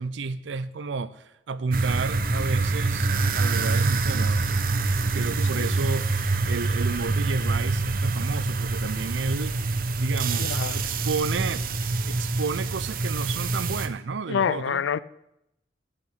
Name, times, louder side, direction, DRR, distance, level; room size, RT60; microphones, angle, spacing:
voice 1, 0.0-3.1 3.3-4.5 5.1-6.1 6.5-9.6 10.0-11.7 12.1-14.8, right 4 dB, 80° right, 0.5 m, -31 dB
sound 1, 1.7-13.9, right 3 dB, 50° right, 0.8 m, -26 dB
voice 2, 10.4-10.8 14.3-15.0, left 7 dB, 85° left, 0.4 m, -27 dB
10.0 x 6.7 x 8.7 m
head